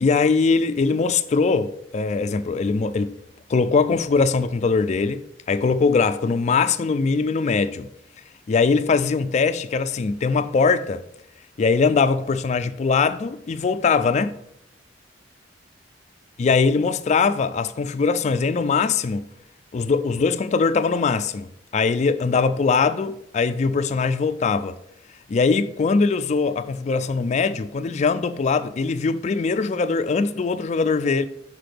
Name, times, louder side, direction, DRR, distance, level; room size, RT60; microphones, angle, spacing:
voice 1, 0.0-3.2 3.5-7.9 8.5-11.0 11.6-14.4 16.4-19.3 19.7-24.8 25.3-31.2, left 4 dB, 40° left, 0.3 m, -21 dB
5.9 x 5.6 x 3.4 m
head